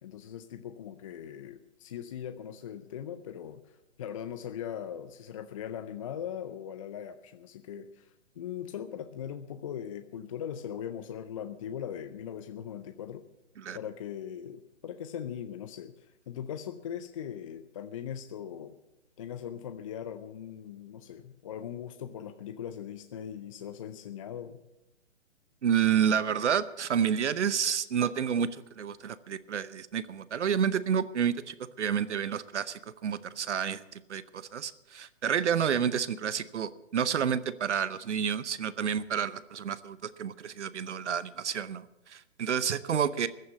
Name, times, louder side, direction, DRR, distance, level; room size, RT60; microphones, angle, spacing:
voice 1, 0.0-13.2 13.7-18.8 19.2-24.6, left 9 dB, 30° left, 9 dB, 0.5 m, -40 dB
voice 2, 25.6-43.3, right 8 dB, 70° right, 16 dB, 0.8 m, -30 dB
14.5 x 9.5 x 7.3 m, 0.91 s
hypercardioid pair, 140°, 36 cm